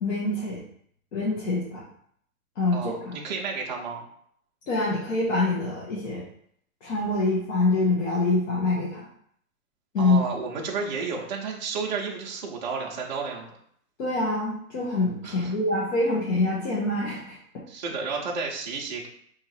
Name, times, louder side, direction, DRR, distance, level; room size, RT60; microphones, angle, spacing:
voice 1, 0.0-0.6 1.1-1.8 2.6-3.1 4.7-6.2 6.8-9.1 9.9-10.2 14.0-17.4, left 2 dB, 55° left, -5 dB, 1.1 m, -25 dB
voice 2, 2.7-4.0 10.0-13.5 15.2-15.5 17.7-19.1, right 5 dB, 35° right, -2 dB, 0.5 m, -32 dB
3.0 x 2.7 x 3.9 m, 0.66 s
hypercardioid pair, 150°, 45 cm